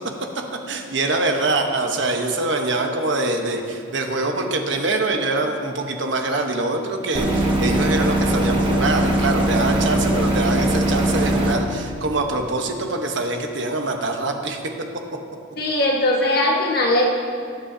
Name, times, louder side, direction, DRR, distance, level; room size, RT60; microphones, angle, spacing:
voice 1, 0.7-14.7, right 2 dB, 70° right, 3 dB, 1.1 m, -24 dB
sound 1, 7.1-11.5, right 1 dB, 25° right, 1.2 m, -20 dB
voice 2, 15.6-17.0, left 1 dB, 50° left, -1 dB, 1.5 m, -19 dB
19.5 x 8.5 x 2.8 m, 2.4 s
head